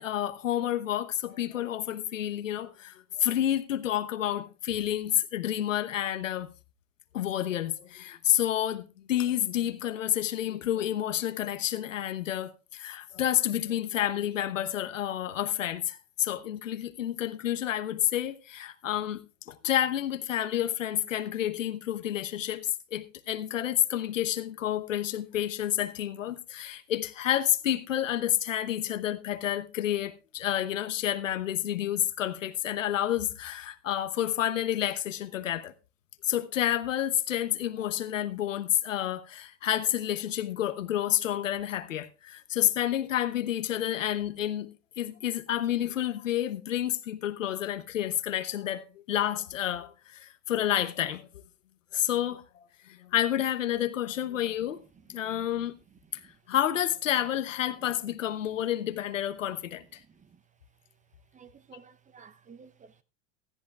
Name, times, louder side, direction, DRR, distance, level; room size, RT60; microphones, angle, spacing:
voice 1, 0.0-6.5 7.1-35.7 36.2-51.3 51.9-54.8 55.1-55.7 56.1-56.2 56.5-60.0, left 11 dB, 90° left, 1.1 m, -29 dB
voice 2, 61.3-63.0, right 6 dB, 20° right, 0.8 m, -53 dB
15.5 x 14.0 x 2.4 m
hypercardioid pair, 95°, 37 cm